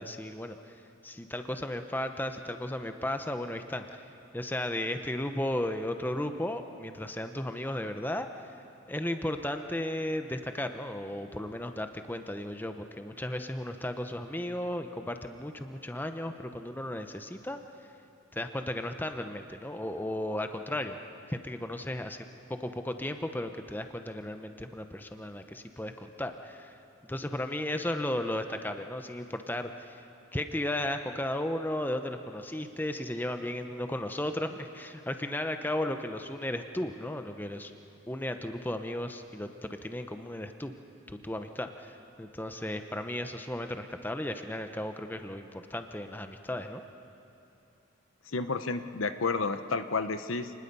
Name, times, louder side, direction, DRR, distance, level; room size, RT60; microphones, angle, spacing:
voice 1, 0.0-4.0 4.3-8.3 8.9-17.6 18.3-21.0 21.3-22.2 22.6-26.7 27.1-30.0 30.3-37.7 38.1-40.7 41.1-46.8, left 1 dB, 10° left, 7 dB, 0.8 m, -35 dB
voice 2, 48.3-50.5, left 4 dB, 80° left, 10 dB, 0.9 m, -31 dB
29.0 x 20.0 x 5.4 m, 2.9 s
head